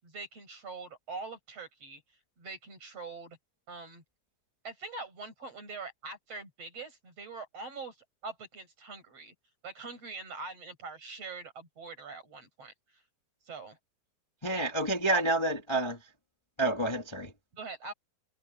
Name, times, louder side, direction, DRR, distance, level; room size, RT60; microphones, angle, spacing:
voice 1, 0.0-2.0 2.4-3.4 3.7-4.0 4.6-8.0 8.2-9.3 9.6-12.7 13.5-13.8 14.5-14.6 15.1-15.3 17.5-17.9, right 3 dB, 35° right, 7.6 m, -43 dB
voice 2, 14.4-16.1 16.6-17.3, right 2 dB, 15° left, 0.8 m, -29 dB
omnidirectional pair, 4.7 m